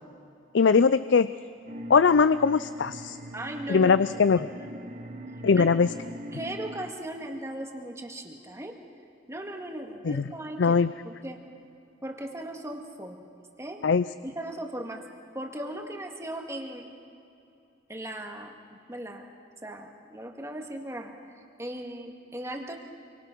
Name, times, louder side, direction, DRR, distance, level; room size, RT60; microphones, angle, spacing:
voice 1, 0.5-1.3 1.9-3.2 3.7-4.5 5.4-5.9 10.0-10.3 10.6-10.9 13.8-14.0, left 5 dB, 70° left, 14 dB, 0.5 m, -21 dB
sound 1, 1.7-6.9, right 1 dB, 40° right, 1.5 m, -42 dB
voice 2, 3.3-4.9 5.5-5.8 6.3-8.8 9.3-10.8 11.0-11.4 12.0-13.2 13.6-13.8 14.2-15.1 15.3-16.9 17.9-18.5 18.9-19.3 19.6-21.1 21.6-22.8, right 1 dB, 15° right, 3 dB, 2.0 m, -38 dB
28.0 x 24.0 x 6.1 m, 2.6 s
head